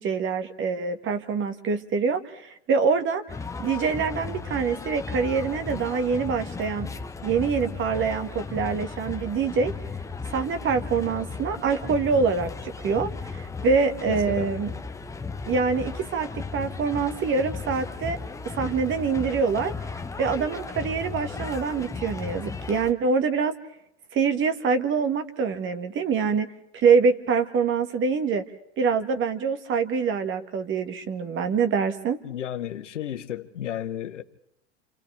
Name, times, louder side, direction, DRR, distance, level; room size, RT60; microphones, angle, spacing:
voice 1, 0.0-3.2 3.6-6.9 7.2-9.7 10.3-14.7 15.5-18.2 18.5-19.7 20.2-23.6 24.1-28.4 28.8-32.2, right 5 dB, 35° right, 1.9 m, -25 dB
sound 1, 3.3-22.9, left 4 dB, 10° left, 0.9 m, -35 dB
voice 2, 14.1-14.5 32.2-34.2, left 10 dB, 85° left, 1.1 m, -33 dB
28.5 x 28.5 x 3.5 m
hypercardioid pair, 95°, 35 cm